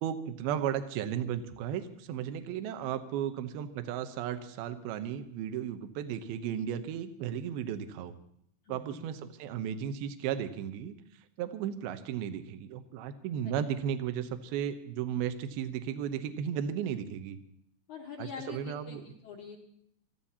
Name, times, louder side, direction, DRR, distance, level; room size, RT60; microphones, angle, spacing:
voice 1, 0.0-8.1 8.7-10.9 11.4-17.4 18.2-19.0, right 9 dB, 75° right, 9 dB, 2.5 m, -35 dB
voice 2, 8.6-9.0 17.9-19.6, left 6 dB, 65° left, 0 dB, 2.0 m, -44 dB
28.0 x 14.5 x 2.8 m, 0.71 s
omnidirectional pair, 5.0 m